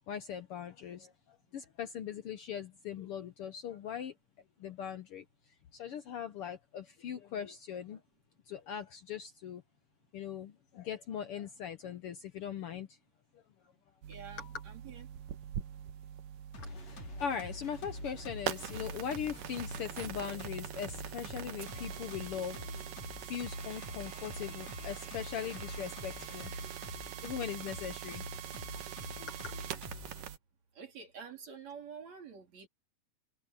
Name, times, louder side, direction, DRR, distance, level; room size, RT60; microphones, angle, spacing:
voice 1, 0.1-1.1 1.5-4.1 4.6-5.2 5.7-8.0 8.5-9.6 10.1-12.9 14.4-14.5 16.6-22.8 23.2-26.5 27.2-28.2 29.3-29.5, left 8 dB, 75° left, 1.3 m, -40 dB
sound 1, 14.0-30.4, right 10 dB, 80° right, 2.8 m, -43 dB
voice 2, 14.1-15.1 30.7-32.7, right 6 dB, 55° right, 4.5 m, -48 dB
sound 2, 16.5-30.3, left 3 dB, 55° left, 5.7 m, -47 dB
omnidirectional pair, 3.7 m